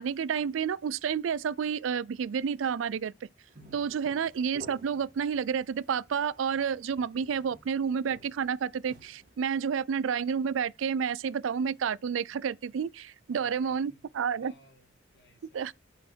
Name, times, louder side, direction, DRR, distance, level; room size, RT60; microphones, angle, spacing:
voice 1, 0.0-3.1 3.7-14.5 15.5-15.7, right 7 dB, 80° right, 0.4 m, -30 dB
sound 1, 3.5-9.3, equal, 45° right, 2.6 m, -54 dB
voice 2, 13.3-14.1 14.4-15.7, left 1 dB, 55° left, 3.1 m, -61 dB
8.4 x 5.6 x 4.5 m
head